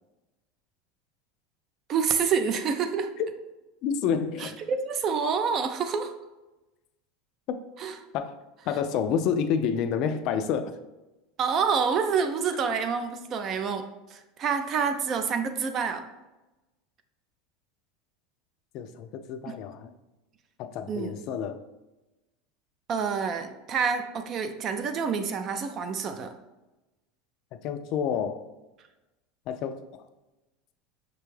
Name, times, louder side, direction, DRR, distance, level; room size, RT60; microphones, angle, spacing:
voice 1, 1.9-3.1 4.4-6.1 7.8-7.9 11.4-13.8 14.1-16.1 19.5-19.6 20.9-21.1 22.9-26.3, right 6 dB, 35° right, 0.3 m, -27 dB
voice 2, 3.8-4.6 7.5-7.6 8.1-8.3 8.7-10.8 18.7-19.9 20.6-21.6 27.5-28.4 29.5-29.9, left 7 dB, 45° left, 0.3 m, -29 dB
5.9 x 2.2 x 3.1 m
supercardioid pair, 150°, 0 cm